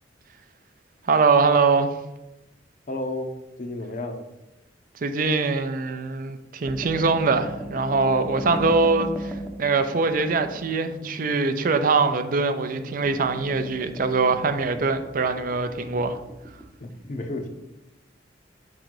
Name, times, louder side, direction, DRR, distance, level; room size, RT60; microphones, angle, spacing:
voice 1, 1.1-1.9 5.0-16.2, right 4 dB, 45° right, 0.4 m, -23 dB
voice 2, 2.9-3.3 3.6-4.2 8.4-8.7 16.8-17.5, left 2 dB, 45° left, 0.7 m, -32 dB
sound 1, 6.7-16.6, right 1 dB, ahead, 0.6 m, -38 dB
6.2 x 3.8 x 4.7 m
head